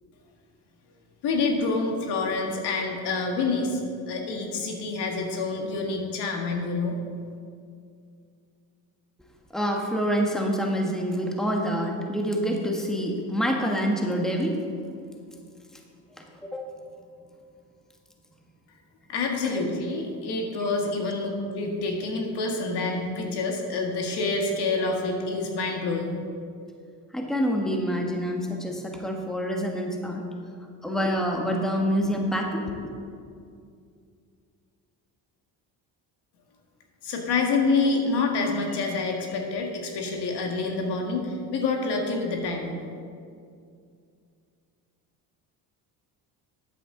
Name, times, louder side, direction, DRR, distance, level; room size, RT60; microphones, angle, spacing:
voice 1, 1.2-3.8 4.1-7.0 19.1-26.2 37.0-42.8, left 3 dB, 65° left, 2 dB, 1.9 m, -27 dB
voice 2, 9.5-14.6 16.5-16.7 19.5-19.6 27.1-30.2 30.8-32.9, equal, ahead, 1 dB, 1.4 m, -26 dB
13.5 x 8.8 x 3.9 m, 2.3 s
cardioid pair, 90°, 42 cm